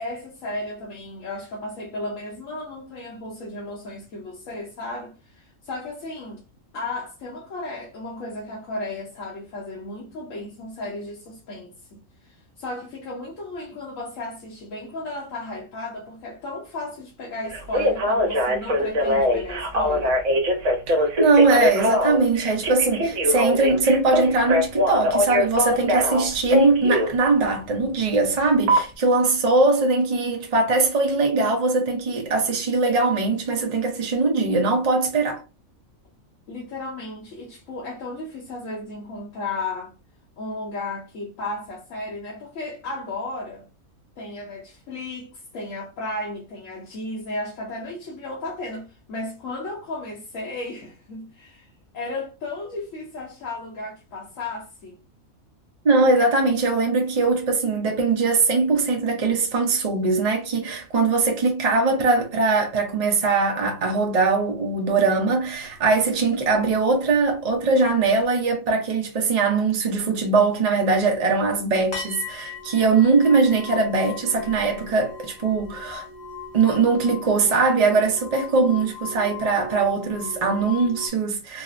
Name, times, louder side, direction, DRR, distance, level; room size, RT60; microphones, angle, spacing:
voice 1, 0.0-6.4 6.7-12.0 12.2-20.2 36.5-39.9 40.4-43.7 44.2-51.7 51.9-55.0, left 2 dB, 70° left, 1.2 m, -34 dB
Telephone, 17.5-27.1 28.7-28.8, left 1 dB, 65° right, 1.2 m, -22 dB
voice 2, 20.9-35.4 55.8-76.1 76.5-81.6, right 3 dB, 35° right, 0.7 m, -21 dB
sound 1, 65.5-66.2 66.5-67.7 68.0-68.1 71.1-71.2 71.9-81.1, left 5 dB, 35° left, 0.9 m, -39 dB
4.1 x 2.0 x 2.4 m
omnidirectional pair, 1.4 m